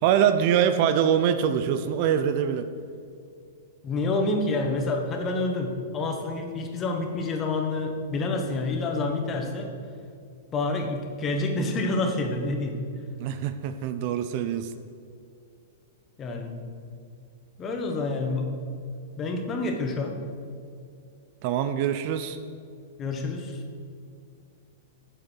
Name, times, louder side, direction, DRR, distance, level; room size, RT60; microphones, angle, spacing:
voice 1, 0.0-2.6 13.2-14.7 21.4-22.4, right 9 dB, 45° right, 9 dB, 0.6 m, -24 dB
voice 2, 3.8-9.7 10.5-12.8 16.2-16.6 17.6-18.5 19.2-20.2 23.0-23.6, left 2 dB, 25° left, 3 dB, 1.3 m, -28 dB
8.6 x 6.8 x 6.3 m, 2.4 s
hypercardioid pair, 145°, 0 cm